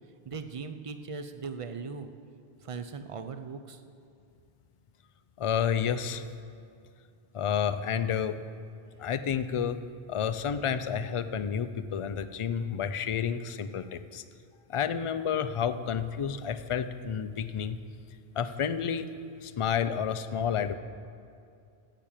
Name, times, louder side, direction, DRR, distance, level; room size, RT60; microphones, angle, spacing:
voice 1, 0.3-2.1 2.6-3.8, right 5 dB, 40° right, 8 dB, 0.6 m, -39 dB
voice 2, 5.4-6.2 7.3-8.4 9.0-9.8 10.1-14.2 14.7-17.8 18.4-19.1 19.4-20.7, left 8 dB, 50° left, 11 dB, 0.4 m, -30 dB
13.5 x 6.0 x 8.7 m, 2.4 s
omnidirectional pair, 1.1 m